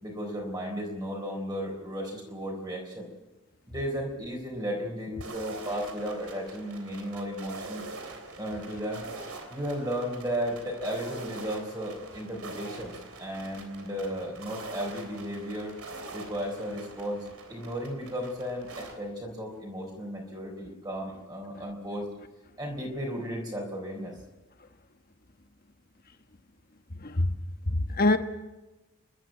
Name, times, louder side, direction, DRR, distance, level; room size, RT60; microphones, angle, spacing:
voice 1, 0.0-3.1 3.7-7.8 8.4-9.0 9.5-15.8 16.1-22.1 22.6-24.2, equal, 20° right, 3.9 m, -34 dB
sound 1, 5.2-18.9, right 3 dB, 90° right, 3.5 m, -44 dB
voice 2, 27.0-27.3 27.7-28.2, left 2 dB, 40° left, 1.2 m, -24 dB
30.0 x 12.0 x 7.7 m
head